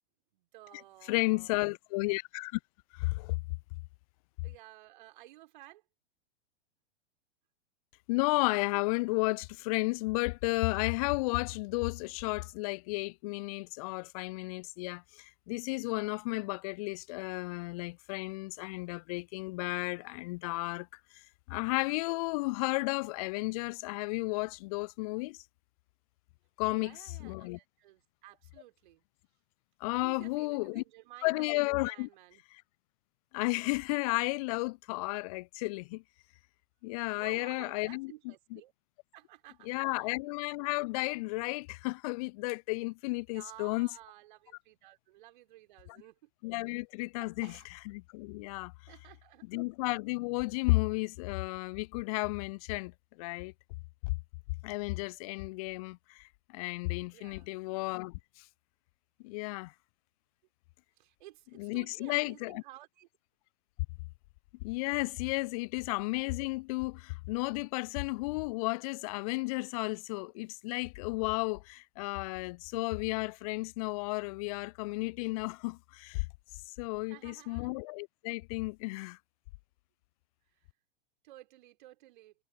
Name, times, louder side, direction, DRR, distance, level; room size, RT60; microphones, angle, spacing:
voice 1, 0.3-1.5 4.4-5.8 26.6-29.0 29.9-31.4 31.8-32.4 37.2-38.7 39.1-40.1 43.3-46.3 47.2-47.7 48.9-49.6 57.1-57.5 61.0-63.1 77.0-77.7 80.5-80.7 81.2-82.3, right 16 dB, 50° right, 4.6 m, -54 dB
voice 2, 1.1-2.6 2.9-3.4 8.1-20.9 21.1-25.4 26.6-27.6 29.8-30.8 31.2-32.1 32.5-32.6 33.3-36.0 36.8-38.6 39.6-43.9 46.4-48.7 49.5-53.5 54.0-54.1 54.6-58.5 59.2-59.7 61.6-62.6 64.6-76.2 76.5-79.2, left 25 dB, 35° left, 0.6 m, -33 dB
figure-of-eight pair, 100°, 31 cm